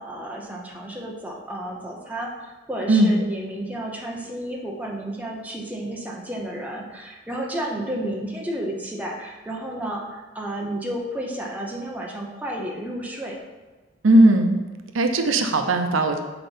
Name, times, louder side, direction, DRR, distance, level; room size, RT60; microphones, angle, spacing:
voice 1, 0.0-13.4, right 1 dB, 10° right, -2 dB, 0.8 m, -32 dB
voice 2, 14.0-14.6 14.9-16.2, right 1 dB, 80° right, 6 dB, 0.6 m, -17 dB
6.0 x 4.2 x 5.4 m, 1.3 s
head